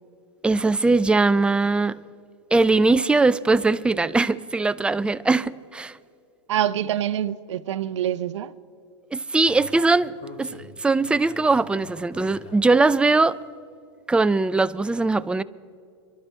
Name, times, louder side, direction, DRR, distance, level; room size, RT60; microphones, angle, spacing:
voice 1, 0.4-2.0 2.5-6.0 9.1-10.1 10.4-13.4 14.1-15.4, right 3 dB, 5° right, 0.3 m, -20 dB
voice 2, 6.5-8.5, right 11 dB, 80° right, 0.5 m, -25 dB
Speech, 9.5-12.9, left 2 dB, 45° left, 2.6 m, -44 dB
26.5 x 12.0 x 3.3 m
hypercardioid pair, 110°, 15 cm